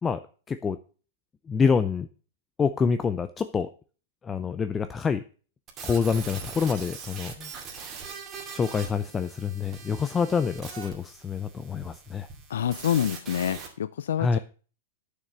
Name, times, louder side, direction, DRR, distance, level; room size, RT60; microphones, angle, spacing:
voice 1, 0.5-0.8 1.5-2.1 2.6-3.7 4.2-5.2 5.8-7.5 7.8-8.0 8.5-12.3 14.2-14.4, left 5 dB, 10° left, 11 dB, 0.4 m, -26 dB
sound 1, 5.7-13.7, right 6 dB, 20° right, 2.3 m, -41 dB
voice 2, 12.5-14.4, left 10 dB, 85° left, 15 dB, 0.4 m, -27 dB
9.3 x 6.6 x 6.6 m, 0.39 s
supercardioid pair, 165°, 0 cm